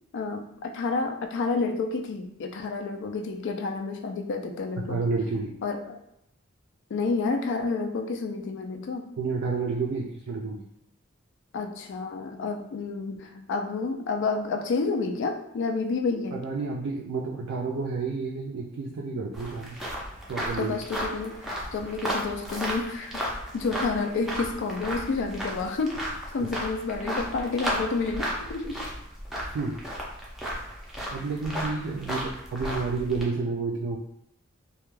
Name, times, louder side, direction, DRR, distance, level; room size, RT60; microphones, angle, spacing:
voice 1, 0.1-5.0 5.6-6.0 6.9-9.1 11.5-16.4 20.6-21.4 21.7-23.2 23.5-26.0 26.3-28.8, left 4 dB, 60° left, 5 dB, 0.3 m, -30 dB
voice 2, 4.9-5.6 9.2-10.7 16.3-19.8 20.3-20.8 26.4-26.5 29.5-29.8 31.1-34.0, right 4 dB, 65° right, -1 dB, 0.3 m, -30 dB
sound 1, 19.3-33.2, equal, ahead, 0.4 m, -34 dB
2.2 x 2.2 x 3.0 m, 0.79 s
head